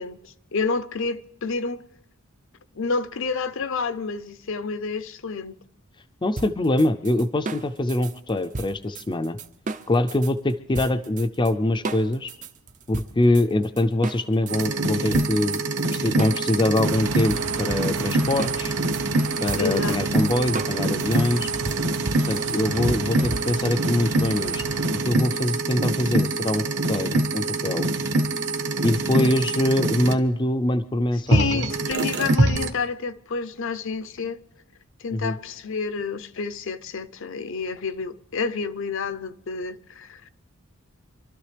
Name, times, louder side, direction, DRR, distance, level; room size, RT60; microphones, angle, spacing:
voice 1, 0.0-1.8 2.7-5.6 19.6-20.0 29.2-29.4 31.3-34.4 35.0-40.3, left 4 dB, 65° left, 0.6 m, -29 dB
voice 2, 6.2-9.4 9.9-12.3 12.9-15.6 15.9-18.7 19.4-21.5 22.3-24.6 24.9-27.9 28.8-31.6 35.1-35.3, left 1 dB, 20° left, 0.5 m, -24 dB
sound 1, 6.4-10.3 10.7-11.5 11.8-14.7 15.1-23.8, right 3 dB, 35° right, 0.6 m, -34 dB
sound 2, 14.5-30.1 31.3-32.7, right 2 dB, 55° right, 1.1 m, -25 dB
sound 3, 16.8-25.1, right 5 dB, 85° right, 0.6 m, -35 dB
27.0 x 12.5 x 3.3 m
head